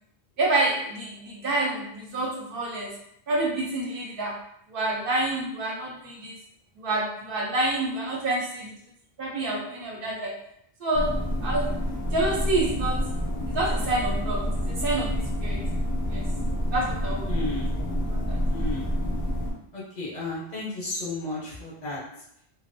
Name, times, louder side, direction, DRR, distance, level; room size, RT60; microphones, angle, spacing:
voice 1, 0.4-2.9 3.3-4.4 4.7-6.3 6.8-8.7 9.2-10.4 10.8-11.7 12.1-13.0 13.5-15.6 16.1-16.3 16.7-17.3 18.1-18.4, right 2 dB, 65° right, -3 dB, 0.8 m, -28 dB
sound 1, 10.9-19.5, equal, 25° left, 0.5 m, -28 dB
voice 2, 17.3-17.7 18.5-18.9 19.7-22.2, left 2 dB, 50° left, -6 dB, 0.8 m, -33 dB
2.5 x 2.1 x 2.6 m, 0.73 s
omnidirectional pair, 1.0 m